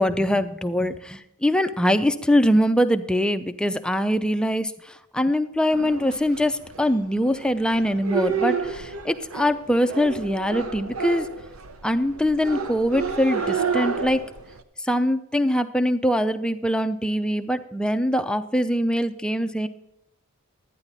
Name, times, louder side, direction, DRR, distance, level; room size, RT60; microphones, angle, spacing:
voice 1, 0.0-11.3 11.8-14.2 14.8-19.7, equal, 5° left, 9 dB, 0.4 m, -23 dB
sound 1, 5.7-14.6, right 5 dB, 70° right, 0.8 m, -30 dB
12.0 x 9.8 x 4.0 m, 0.86 s
head